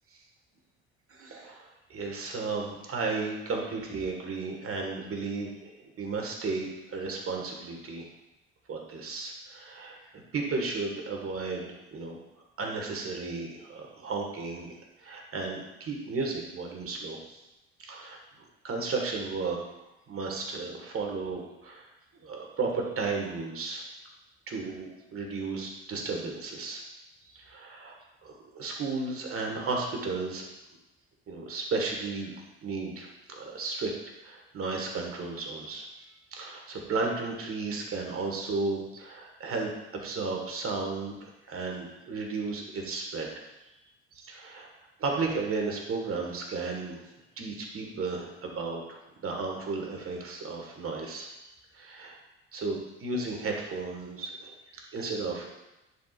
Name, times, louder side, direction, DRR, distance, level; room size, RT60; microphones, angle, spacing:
voice 1, 1.1-8.1 8.7-12.2 12.6-17.4 17.8-19.6 20.1-21.9 22.2-23.8 24.5-26.8 27.2-28.0 28.2-30.4 31.3-32.3 32.6-33.9 34.2-35.8 36.3-43.3 43.6-43.7 44.1-44.7 45.0-47.1 47.4-51.3 51.7-52.2 52.5-55.5, right 3 dB, 40° right, 1 dB, 1.7 m, -34 dB
10.0 x 4.8 x 2.5 m, 0.98 s
hypercardioid pair, 55°, 34 cm